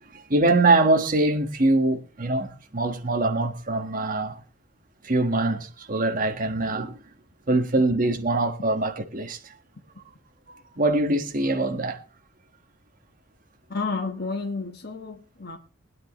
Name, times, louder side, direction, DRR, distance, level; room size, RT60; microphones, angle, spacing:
voice 1, 0.1-4.4 5.0-6.9 7.5-9.4 10.8-12.0, right 2 dB, 40° right, 1.5 m, -23 dB
voice 2, 13.7-15.6, left 4 dB, 50° left, 1.4 m, -31 dB
20.5 x 10.5 x 3.1 m
head